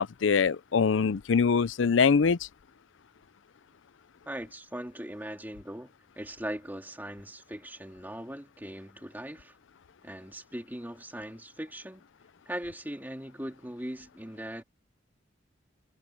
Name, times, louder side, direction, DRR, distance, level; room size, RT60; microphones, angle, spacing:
voice 1, 0.0-2.4, left 5 dB, 75° left, 0.5 m, -23 dB
voice 2, 4.3-9.5 10.0-12.0 12.5-14.6, right 1 dB, 10° right, 2.5 m, -40 dB
head